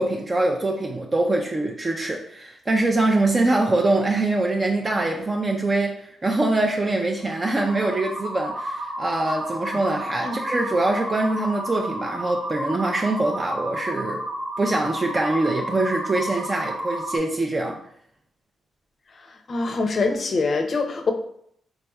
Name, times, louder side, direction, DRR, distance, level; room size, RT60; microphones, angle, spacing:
voice 1, 0.0-14.2 14.6-17.8, right 2 dB, 30° right, 1 dB, 0.3 m, -23 dB
sound 1, 7.2-17.2, right 1 dB, 60° right, 0.8 m, -31 dB
voice 2, 19.5-21.1, left 3 dB, 45° left, 5 dB, 0.5 m, -24 dB
3.4 x 3.0 x 2.2 m, 0.68 s
cardioid pair, 80°, 0 cm